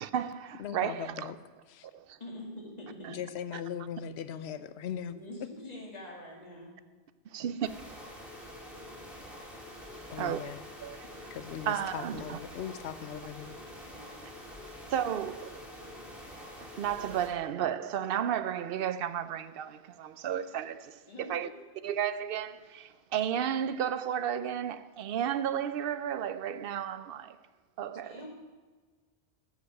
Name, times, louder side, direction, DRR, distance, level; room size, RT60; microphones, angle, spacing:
voice 1, 0.0-1.3 1.9-2.2 3.0-3.1 7.3-7.7 10.2-10.4 10.8-11.3 11.7-12.4 14.9-15.6 16.6-21.5 21.8-27.4 27.8-28.2, right 9 dB, 65° right, 0.7 m, -33 dB
voice 2, 0.6-1.4 1.7-1.9 3.1-5.2 10.1-10.6 11.3-13.6, left 9 dB, 75° left, 0.9 m, -39 dB
voice 3, 2.2-3.2 4.3-4.4 5.1-6.8 13.9-14.3 21.1-21.8 28.0-28.3, left 1 dB, 40° left, 2.2 m, -45 dB
sound 1, 7.6-17.3, left 1 dB, ahead, 1.9 m, -46 dB
15.0 x 5.1 x 6.5 m
omnidirectional pair, 1.1 m